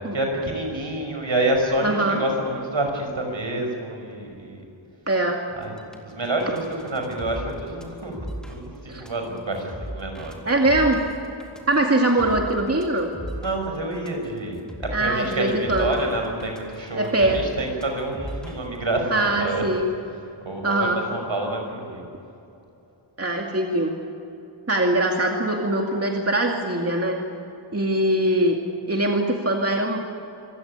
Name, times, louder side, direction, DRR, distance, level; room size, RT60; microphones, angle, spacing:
voice 1, 0.1-4.6 5.6-5.7 6.0-8.2 8.5-10.5 13.4-19.7 20.4-22.0, right 1 dB, 70° right, 3 dB, 6.0 m, -28 dB
voice 2, 1.8-2.2 5.1-5.4 8.9-9.0 10.4-11.0 11.7-13.1 14.9-15.9 16.9-17.4 19.1-19.9 20.6-21.0 23.2-23.9 24.7-27.2 27.7-28.6 28.9-30.0, right 1 dB, 30° right, 1 dB, 2.3 m, -22 dB
sound 1, 5.5-18.8, equal, ahead, 3.6 m, -37 dB
26.0 x 16.0 x 9.9 m, 2.8 s
wide cardioid pair, 65°, 48 cm